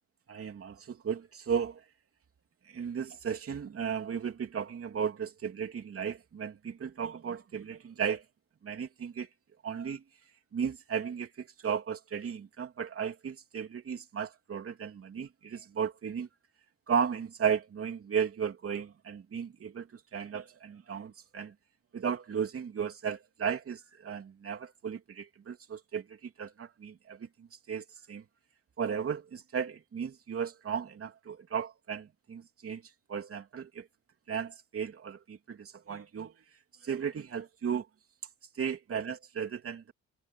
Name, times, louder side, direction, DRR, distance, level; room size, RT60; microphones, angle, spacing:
voice 1, 0.3-1.8 2.7-8.2 8.6-9.3 9.6-10.0 10.5-16.3 16.9-21.5 21.9-28.2 28.8-32.8 33.1-33.9 34.3-36.3 36.8-37.9 38.5-39.9, right 7 dB, 50° right, 3.2 m, -35 dB
cardioid pair, 90°, 30 cm